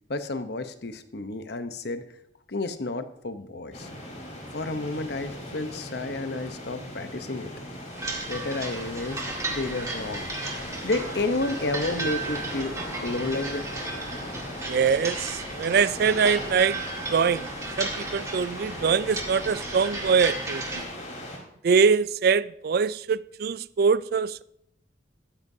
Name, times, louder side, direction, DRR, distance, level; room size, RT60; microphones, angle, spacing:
voice 1, 0.1-2.0 2.5-3.9 4.5-7.5 8.3-10.3 10.8-13.7, left 2 dB, 60° left, 0.9 m, -31 dB
sound 1, 3.7-21.4, left 1 dB, 40° left, 4.2 m, -38 dB
sound 2, 7.9-20.8, right 2 dB, 15° right, 1.9 m, -35 dB
voice 2, 14.7-16.8 17.1-17.5 17.8-20.8 21.6-24.4, right 5 dB, 55° right, 0.3 m, -23 dB
14.5 x 13.0 x 2.8 m
head